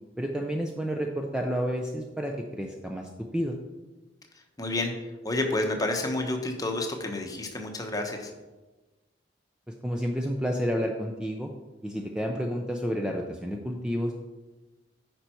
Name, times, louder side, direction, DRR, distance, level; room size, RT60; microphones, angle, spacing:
voice 1, 0.2-3.6 9.7-11.5 11.8-14.1, equal, 5° right, 1 dB, 0.5 m, -30 dB
voice 2, 4.6-4.9 5.2-8.3, left 2 dB, 20° left, 3 dB, 1.0 m, -29 dB
9.1 x 5.3 x 4.4 m, 1.2 s
head